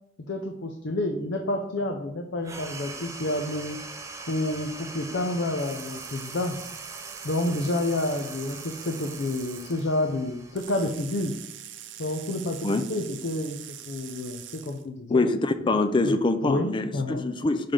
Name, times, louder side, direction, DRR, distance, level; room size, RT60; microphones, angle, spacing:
voice 1, 0.3-3.8 4.3-6.7 7.2-11.3 12.0-13.6 13.9-15.2 16.0-16.2 16.4-17.3, left 1 dB, 70° left, 4 dB, 0.6 m, -29 dB
sound 1, 2.4-11.3, right 3 dB, 15° right, 0.6 m, -42 dB
sound 2, 5.6-9.8 10.6-14.9, right 11 dB, 80° right, 0.5 m, -43 dB
voice 2, 15.1-17.7, left 2 dB, 25° left, 10 dB, 0.4 m, -24 dB
5.7 x 5.0 x 3.7 m, 0.78 s
head